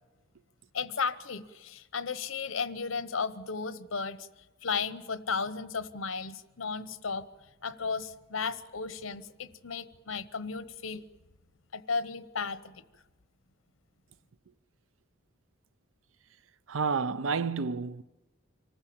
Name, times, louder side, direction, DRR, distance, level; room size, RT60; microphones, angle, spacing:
voice 1, 0.7-4.3 4.6-7.2 7.6-11.0 11.7-12.8, left 5 dB, 90° left, 1.0 m, -34 dB
voice 2, 16.7-18.0, right 5 dB, 75° right, 0.6 m, -30 dB
26.0 x 14.5 x 8.6 m
head